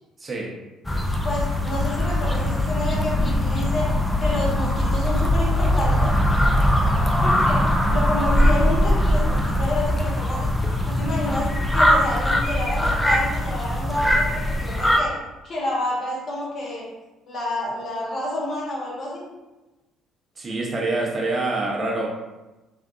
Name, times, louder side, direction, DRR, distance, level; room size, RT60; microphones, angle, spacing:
voice 1, 0.2-0.5 20.4-22.1, right 2 dB, 35° right, -2 dB, 0.6 m, -26 dB
sound 1, 0.8-15.0, left 1 dB, 10° left, 0.3 m, -21 dB
voice 2, 1.2-3.9 4.2-6.1 7.1-15.1 15.4-16.9 17.3-19.3, left 1 dB, 50° left, -4 dB, 0.9 m, -29 dB
2.6 x 2.3 x 2.4 m, 1.1 s
cardioid pair, 90°, 0 cm